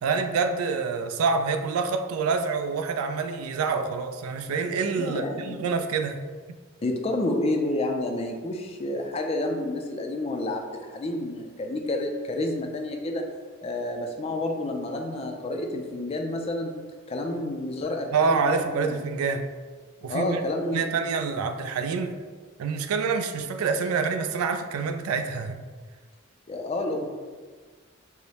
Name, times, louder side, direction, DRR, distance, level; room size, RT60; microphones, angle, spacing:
voice 1, 0.0-6.2 18.1-19.5 20.0-20.4 20.7-22.1 22.6-25.6, right 5 dB, 90° right, 7 dB, 0.3 m, -27 dB
voice 2, 4.9-5.6 6.8-13.2 13.6-16.7 17.1-19.0 20.1-20.9 26.5-27.1, left 1 dB, 30° left, 2 dB, 0.3 m, -29 dB
4.7 x 2.0 x 2.8 m, 1.5 s
head